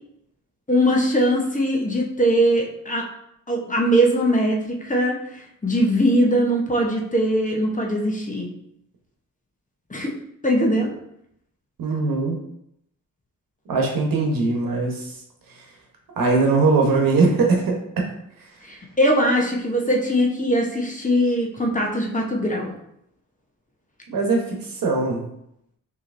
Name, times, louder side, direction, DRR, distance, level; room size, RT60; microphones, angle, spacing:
voice 1, 0.7-3.1 3.5-8.5 9.9-10.1 10.4-10.9 18.6-22.7, equal, 25° left, -1 dB, 0.8 m, -21 dB
voice 2, 11.8-12.4 13.7-15.1 15.5-15.6 16.1-18.0 18.4-18.5 24.1-25.2, right 3 dB, 80° right, 0 dB, 1.1 m, -21 dB
5.5 x 2.9 x 2.6 m, 0.76 s
cardioid pair, 85°, 34 cm